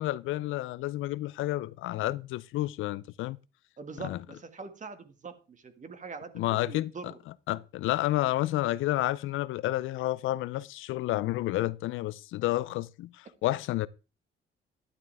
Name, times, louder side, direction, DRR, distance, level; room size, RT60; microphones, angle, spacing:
voice 1, 0.0-3.4 4.0-4.2 6.3-6.9 7.5-13.9, left 16 dB, 85° left, 0.5 m, -30 dB
voice 2, 3.8-7.1, right 4 dB, 40° right, 2.0 m, -43 dB
12.0 x 11.0 x 3.5 m
cardioid pair, 90°, 20 cm